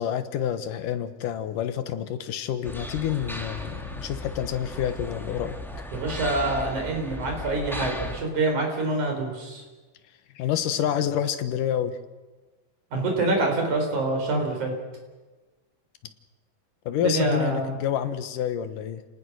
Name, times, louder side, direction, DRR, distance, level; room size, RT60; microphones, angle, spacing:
voice 1, 0.0-5.6 10.4-12.0 16.9-19.0, left 10 dB, 75° left, 10 dB, 2.7 m, -28 dB
sound 1, 2.6-8.2, left 1 dB, ahead, 1.2 m, -36 dB
voice 2, 5.9-9.6 12.9-14.7 17.0-17.8, right 2 dB, 60° right, 2 dB, 6.1 m, -26 dB
30.0 x 19.0 x 6.3 m, 1.2 s
omnidirectional pair, 3.9 m